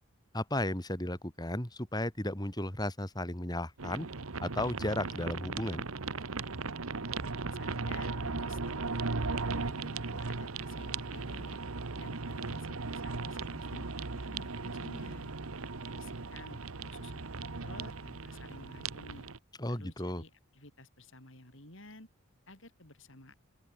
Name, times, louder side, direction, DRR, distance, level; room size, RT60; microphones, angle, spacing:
voice 1, 0.3-4.1 4.4-5.8 19.6-20.2, left 1 dB, 20° left, 3.2 m, -34 dB
sound 1, 3.8-19.4, right 4 dB, 75° right, 1.2 m, -37 dB
voice 2, 7.5-11.6 12.0-15.3 15.9-19.3 19.7-22.1 22.5-23.3, left 2 dB, 60° left, 5.1 m, -53 dB
open air
head